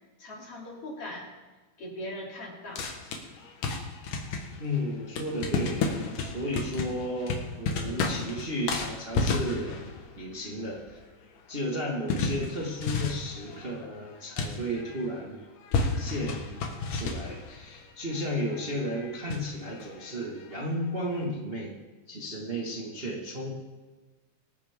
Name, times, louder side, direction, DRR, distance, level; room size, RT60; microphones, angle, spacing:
voice 1, 0.2-1.3 1.8-3.0, left 1 dB, 40° left, -4 dB, 3.9 m, -40 dB
sound 1, 2.8-15.2 15.6-21.3, left 4 dB, 70° left, 3.0 m, -33 dB
voice 2, 4.6-9.8 10.2-11.0 11.5-15.4 16.0-16.5 16.9-21.7 22.1-23.5, equal, 30° right, -3 dB, 1.1 m, -33 dB
24.5 x 9.4 x 3.7 m, 1.3 s
omnidirectional pair, 4.0 m